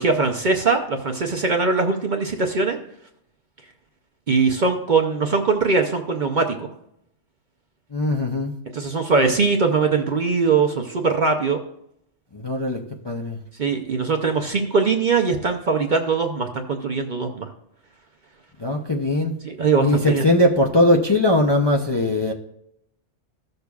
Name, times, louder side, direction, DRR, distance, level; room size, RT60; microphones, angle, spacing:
voice 1, 0.0-2.8 4.3-6.7 8.7-11.6 13.6-17.5 19.4-20.2, right 4 dB, 50° right, 3 dB, 0.6 m, -21 dB
voice 2, 7.9-8.5 12.3-13.4 18.6-19.3 19.8-22.3, left 1 dB, 30° left, 0 dB, 0.5 m, -20 dB
15.0 x 6.6 x 2.3 m, 0.76 s
omnidirectional pair, 1.3 m